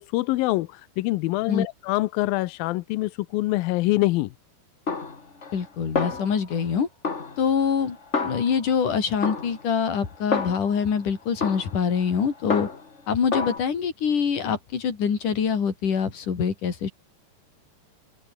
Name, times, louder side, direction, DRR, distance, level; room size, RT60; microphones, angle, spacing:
voice 1, 0.0-4.3, left 19 dB, 80° left, 2.1 m, -25 dB
Snare drum, 4.9-5.7 6.0-6.7 7.0-8.8 9.2-10.9 11.4-13.0 13.3-13.6, left 4 dB, 35° left, 1.1 m, -30 dB
voice 2, 5.5-6.9 7.4-8.0 8.2-12.7 13.1-16.9, left 6 dB, 50° left, 4.8 m, -24 dB
open air
omnidirectional pair, 4.8 m